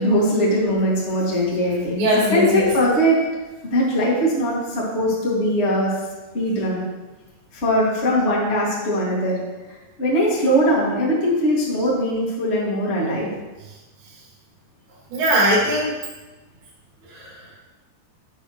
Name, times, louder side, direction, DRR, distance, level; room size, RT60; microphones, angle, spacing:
voice 1, 0.0-3.2 3.7-5.9 6.3-6.8 7.5-9.4 10.0-13.3, equal, 75° left, -5 dB, 0.6 m, -20 dB
voice 2, 2.0-2.9 15.1-15.9 17.1-17.4, equal, 60° right, -8 dB, 4.5 m, -20 dB
15.5 x 6.5 x 3.2 m, 1.2 s
omnidirectional pair, 5.7 m